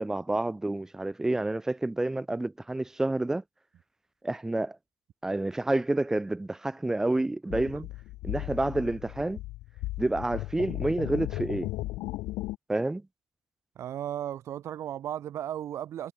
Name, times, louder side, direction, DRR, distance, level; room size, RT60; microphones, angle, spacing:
voice 1, 0.0-3.4 4.2-4.8 5.2-7.9 8.2-9.4 10.0-11.7 12.7-13.0, right 2 dB, 5° right, 5.9 m, -29 dB
sound 1, 7.5-12.6, left 18 dB, 85° left, 3.9 m, -36 dB
voice 2, 13.7-16.1, right 11 dB, 45° right, 6.8 m, -35 dB
cardioid pair, 180°, 7 cm